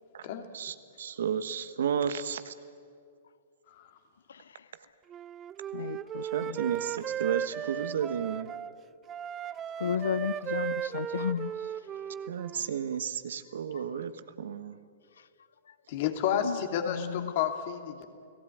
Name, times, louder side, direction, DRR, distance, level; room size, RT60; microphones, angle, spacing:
voice 1, 0.5-2.5 6.2-8.5 12.3-14.8, right 8 dB, 70° right, 12 dB, 1.4 m, -33 dB
voice 2, 4.3-4.7 5.7-6.6 9.8-11.7 13.7-13.8 16.4-16.6 16.9-17.3, left 7 dB, 75° left, 17 dB, 0.6 m, -34 dB
Wind instrument woodwind instrument, 5.1-8.7 9.1-12.7, right 9 dB, 25° right, 0.6 m, -36 dB
voice 3, 15.9-18.1, left 9 dB, 55° left, 6 dB, 2.8 m, -31 dB
29.5 x 17.0 x 9.4 m, 2.3 s
hypercardioid pair, 115°, 0 cm